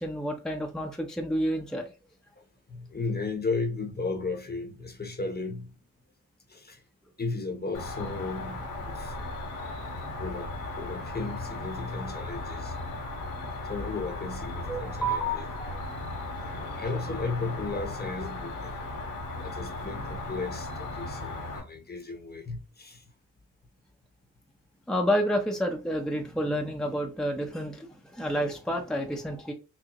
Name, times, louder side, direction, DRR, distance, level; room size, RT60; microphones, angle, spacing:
voice 1, 0.0-1.9 14.7-16.2 24.9-29.5, equal, ahead, 0.7 m, -30 dB
voice 2, 2.7-5.7 6.5-6.8 7.2-9.2 10.2-12.8 13.6-15.5 16.7-18.8 19.4-23.0, left 3 dB, 30° left, 0.9 m, -35 dB
Cricket, 7.7-21.6, left 2 dB, 80° left, 1.7 m, -36 dB
6.1 x 2.1 x 2.9 m
cardioid pair, 85°, 30 cm